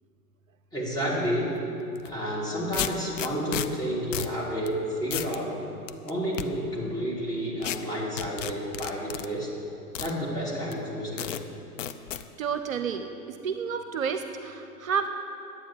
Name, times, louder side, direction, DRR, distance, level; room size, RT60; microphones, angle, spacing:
voice 1, 0.7-1.5 2.0-5.5 6.0-9.5 10.0-11.3, equal, 10° left, -6 dB, 3.0 m, -30 dB
sound 1, 1.9-2.1 2.7-3.7 4.1-4.3 4.7-4.8 5.1-5.4 5.9-6.4 7.6-7.8 8.2-9.3 9.9-10.1 10.7-10.8 11.2-11.4 11.8-12.2, left 11 dB, 55° left, 0.7 m, -32 dB
voice 2, 12.4-15.1, right 6 dB, 60° right, 8 dB, 0.8 m, -30 dB
11.5 x 8.9 x 7.8 m, 2.8 s
figure-of-eight pair, 105°, 46 cm